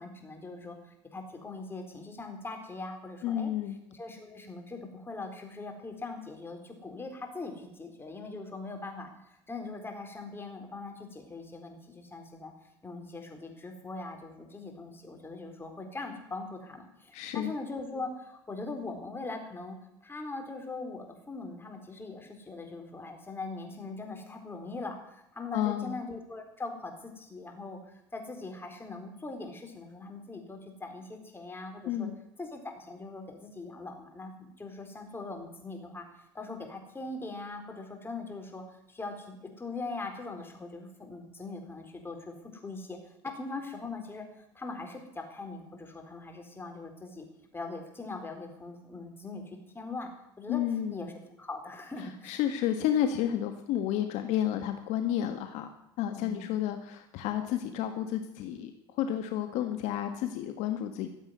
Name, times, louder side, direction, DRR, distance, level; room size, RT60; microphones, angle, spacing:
voice 1, 0.0-3.5 3.9-12.5 12.8-32.1 32.4-44.2 44.5-47.3 47.5-50.1 50.4-50.6 50.9-51.1 51.4-52.4 56.1-56.5, left 3 dB, 20° left, 4 dB, 4.2 m, -41 dB
voice 2, 3.2-3.8 17.1-17.5 25.5-26.0 31.9-32.2 50.5-51.0 52.2-55.7 56.0-61.1, left 11 dB, 65° left, 7 dB, 1.7 m, -31 dB
14.5 x 8.1 x 9.4 m, 0.81 s
hypercardioid pair, 85°, 13 cm